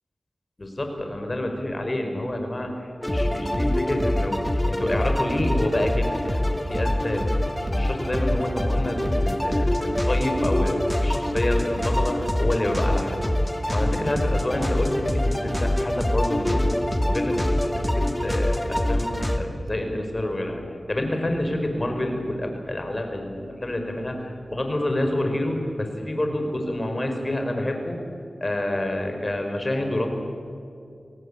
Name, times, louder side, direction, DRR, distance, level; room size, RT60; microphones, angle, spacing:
voice 1, 0.6-7.3 7.6-13.2 13.7-16.6 17.1-20.6 20.9-28.0 28.4-30.1, left 1 dB, 35° left, 4 dB, 5.0 m, -28 dB
sound 1, 3.0-19.4, left 1 dB, 15° left, 2.5 m, -24 dB
23.5 x 17.5 x 8.8 m, 2.5 s
cardioid pair, 45°, 0 cm